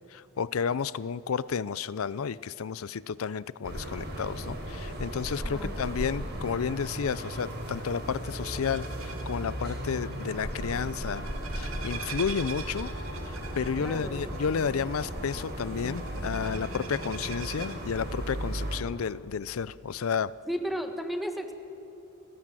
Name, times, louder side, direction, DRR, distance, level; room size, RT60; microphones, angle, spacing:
voice 1, 0.1-11.3 11.5-12.9 13.6-20.3, left 6 dB, 85° left, 19 dB, 0.5 m, -31 dB
sound 1, 3.6-18.8, equal, 55° right, 4.3 m, -36 dB
voice 2, 5.4-5.8 13.8-14.3 20.5-21.5, equal, ahead, 6 dB, 1.6 m, -34 dB
sound 2, 6.9-17.8, right 5 dB, 70° right, 2.6 m, -45 dB
30.0 x 17.0 x 7.6 m, 2.9 s
head